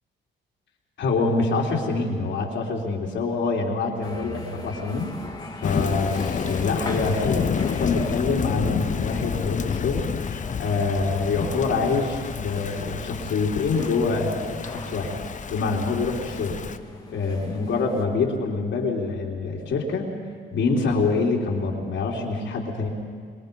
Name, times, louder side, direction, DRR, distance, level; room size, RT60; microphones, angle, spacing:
voice 1, 1.0-5.1 5.6-10.0 10.3-15.1 15.5-16.6 17.1-20.1 20.5-22.9, left 4 dB, 70° left, -3 dB, 3.3 m, -25 dB
sound 1, 4.0-18.0, left 2 dB, 20° left, 2.9 m, -40 dB
Thunder / Rain, 5.6-16.8, left 6 dB, 40° left, 0.9 m, -30 dB
sound 2, 5.8-8.2, right 4 dB, 50° right, 4.6 m, -48 dB
25.5 x 21.0 x 5.4 m, 2.1 s
cardioid pair, 90°, 20 cm